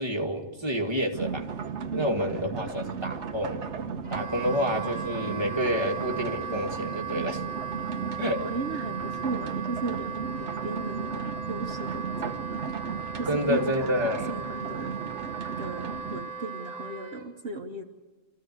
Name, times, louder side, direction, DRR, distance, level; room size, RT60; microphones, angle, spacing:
voice 1, 0.0-1.5 1.9-3.7 4.1-7.4 8.2-8.5 13.3-14.3, equal, 25° right, 1 dB, 2.0 m, -29 dB
sound 1, 1.1-16.2, right 6 dB, 85° right, 1.3 m, -35 dB
voice 2, 1.9-2.7 3.8-3.9 8.2-12.7 13.1-14.9 15.6-17.8, right 3 dB, 60° right, 3 dB, 1.4 m, -36 dB
Wind instrument woodwind instrument, 4.0-17.2, right 6 dB, 30° left, 3.3 m, -38 dB
26.0 x 14.5 x 9.5 m, 1.2 s
omnidirectional pair, 1.2 m